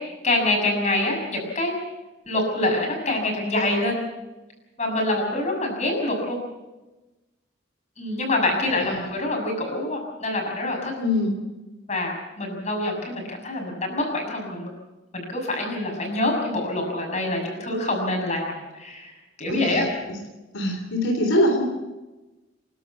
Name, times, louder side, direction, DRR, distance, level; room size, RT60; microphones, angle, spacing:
voice 1, 0.0-1.8 2.3-3.9 4.8-6.4 8.0-10.9 11.9-14.7 15.1-19.1 19.4-19.8, left 2 dB, 35° left, 1 dB, 6.6 m, -26 dB
voice 2, 11.0-11.4 19.5-20.2 20.5-21.6, left 1 dB, 85° left, 3 dB, 3.5 m, -24 dB
28.5 x 12.5 x 8.4 m, 1.1 s
head